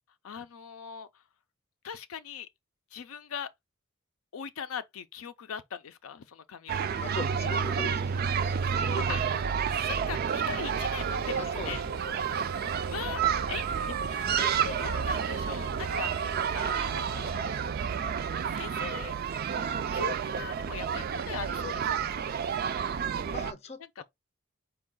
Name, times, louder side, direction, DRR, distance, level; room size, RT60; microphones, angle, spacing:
voice 1, 0.2-1.2 1.8-2.5 2.9-3.5 4.3-6.8 9.1-9.3 9.7-11.8 12.6-17.5 18.4-19.1 19.9-22.5 24.0-24.1, left 7 dB, 85° left, 0.5 m, -41 dB
sound 1, 6.7-23.5, right 7 dB, 45° right, 0.3 m, -30 dB
voice 2, 7.0-9.3 9.6-9.7 11.4-12.2 23.3-24.0, left 3 dB, 30° left, 0.5 m, -40 dB
sound 2, 10.3-17.3, right 5 dB, 80° right, 0.7 m, -42 dB
4.5 x 2.3 x 3.7 m
head